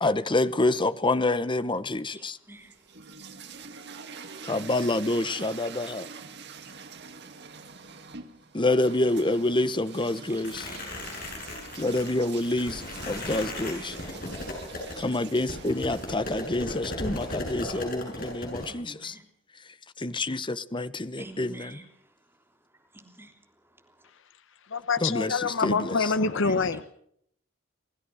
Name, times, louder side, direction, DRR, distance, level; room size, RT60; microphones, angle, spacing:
voice 1, 0.0-2.4 4.4-6.1 8.5-10.7 11.8-13.9 15.0-19.1 20.0-21.8 25.0-26.1, left 2 dB, 25° left, 1.0 m, -27 dB
voice 2, 2.1-3.0 10.3-11.0 13.7-14.2 18.7-19.2 21.2-24.1 25.3-26.1 26.4-26.6, right 1 dB, 10° right, 3.3 m, -50 dB
sound 1, 2.5-18.5, right 5 dB, 60° right, 2.3 m, -46 dB
sound 2, 10.4-18.7, left 1 dB, 45° left, 7.6 m, -37 dB
voice 3, 24.7-26.9, left 4 dB, 70° left, 1.0 m, -26 dB
28.0 x 16.5 x 6.4 m
head